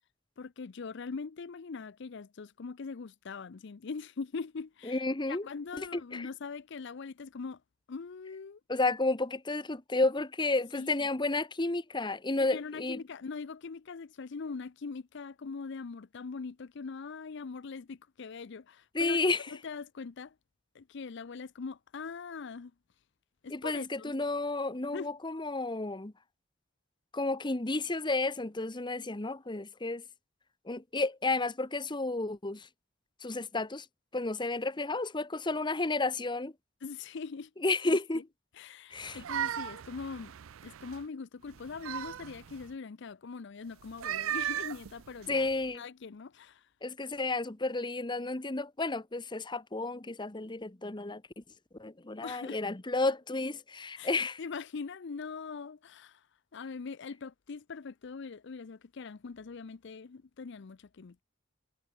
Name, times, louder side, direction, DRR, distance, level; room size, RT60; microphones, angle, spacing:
voice 1, 0.4-7.6 7.9-8.6 10.7-11.1 12.4-19.2 19.5-20.3 20.7-22.7 23.4-24.2 24.9-25.1 36.8-37.5 38.1-38.2 38.5-40.3 40.6-45.5 45.7-46.7 52.2-52.6 54.0-54.1 54.4-56.3 56.5-61.2, left 4 dB, 60° left, 0.5 m, -42 dB
voice 2, 4.8-5.5 5.8-6.3 8.7-13.0 18.9-19.5 23.5-26.1 27.1-30.0 30.7-32.7 33.2-33.8 34.1-36.5 37.6-38.2 38.9-39.2 45.3-45.8 46.8-51.4 51.8-54.4, left 2 dB, 25° left, 1.1 m, -32 dB
sound 1, 39.0-41.0 41.5-42.7 43.8-45.7, right 10 dB, 85° right, 0.5 m, -37 dB
head